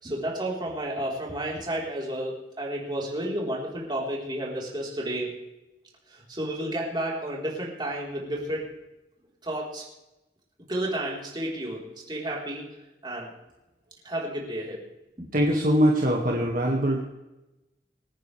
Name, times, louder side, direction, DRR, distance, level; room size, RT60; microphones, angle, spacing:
voice 1, 0.0-5.3 6.1-8.7 9.4-9.8 10.7-12.7 13.0-13.3 14.0-14.8 15.2-15.3, right 1 dB, 25° right, -3 dB, 4.2 m, -31 dB
voice 2, 15.3-17.0, equal, 55° right, -2 dB, 2.0 m, -22 dB
26.5 x 10.0 x 3.4 m, 0.97 s
head